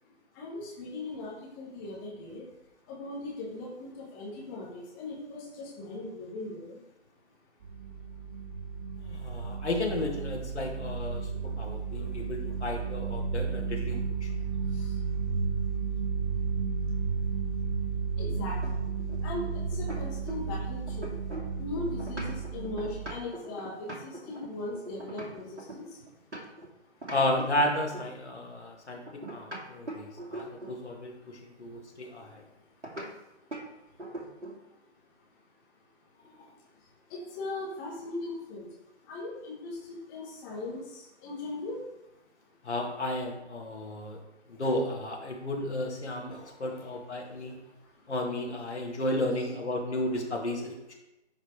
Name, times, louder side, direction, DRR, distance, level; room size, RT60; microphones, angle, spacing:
voice 1, 0.4-2.4 2.9-6.8 14.7-14.9 18.2-18.9 19.2-19.5 19.7-21.1 21.6-25.8 37.1-38.7 39.1-39.8 40.1-40.8 41.2-41.8 49.4-49.5, left 2 dB, 15° left, -4 dB, 1.3 m, -38 dB
sound 1, 7.6-23.1, right 5 dB, 15° right, 0.6 m, -33 dB
voice 2, 9.1-11.3 11.6-14.3 27.1-32.5 36.4-36.5 42.6-44.2 44.5-47.6 48.1-50.9, left 1 dB, 70° left, 0 dB, 2.1 m, -33 dB
sound 2, 18.6-20.6 20.9-26.7 27.0-28.2 29.1-30.8 32.8-33.1 33.5-33.7 34.0-34.6, right 1 dB, 85° right, 2.3 m, -42 dB
10.5 x 4.8 x 3.2 m, 0.93 s
figure-of-eight pair, 145°, 35 cm